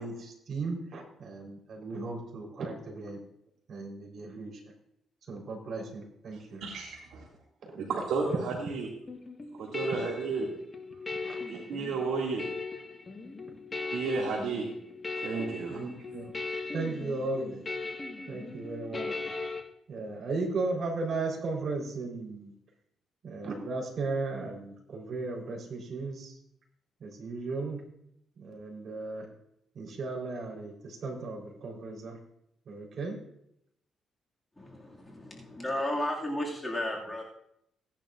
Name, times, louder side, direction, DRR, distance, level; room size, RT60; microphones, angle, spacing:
voice 1, 0.0-3.2 3.7-4.6 5.3-6.6 7.6-8.3 11.2-11.6 15.7-16.3 16.7-17.7 18.3-19.1 19.9-22.5 23.2-26.4 27.0-27.8 28.4-29.3 29.7-32.2 32.7-33.2, right 3 dB, 60° right, 0 dB, 4.1 m, -36 dB
voice 2, 6.6-7.3 7.8-8.9 9.5-10.5 11.5-12.5 13.9-14.7 15.2-15.8, right 4 dB, 75° right, -2 dB, 2.3 m, -32 dB
sound 1, 9.1-19.6, left 3 dB, 35° left, 1.6 m, -38 dB
voice 3, 34.6-37.3, left 1 dB, 15° left, -3 dB, 2.3 m, -34 dB
17.0 x 10.5 x 2.5 m, 0.75 s
cardioid pair, 90°, 0 cm